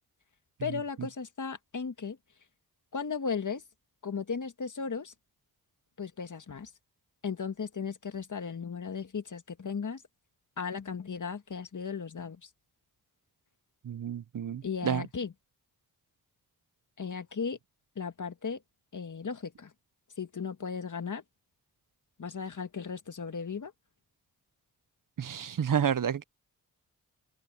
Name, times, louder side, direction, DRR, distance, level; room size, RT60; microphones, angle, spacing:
voice 1, 0.6-2.2 2.9-3.6 4.0-5.1 6.0-6.7 7.2-10.0 10.6-12.5 14.6-15.3 17.0-17.6 18.0-18.6 18.9-19.7 20.2-21.2 22.2-23.7, left 5 dB, 50° left, 1.8 m, -36 dB
voice 2, 13.8-15.0 25.2-26.2, right 8 dB, 55° right, 0.9 m, -30 dB
open air
cardioid pair, 50°, 39 cm